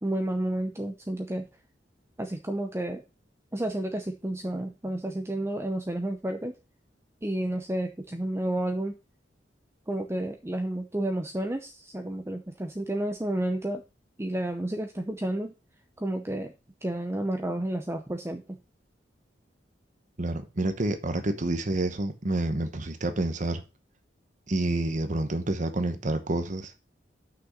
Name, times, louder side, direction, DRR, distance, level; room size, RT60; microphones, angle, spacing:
voice 1, 0.0-1.5 2.2-3.0 3.5-6.6 7.2-8.9 9.9-13.8 14.2-15.5 16.0-16.5 16.8-18.6, right 1 dB, 15° right, 0.7 m, -31 dB
voice 2, 20.2-23.6 24.5-26.7, right 2 dB, 45° right, 1.0 m, -28 dB
6.2 x 5.9 x 6.4 m
head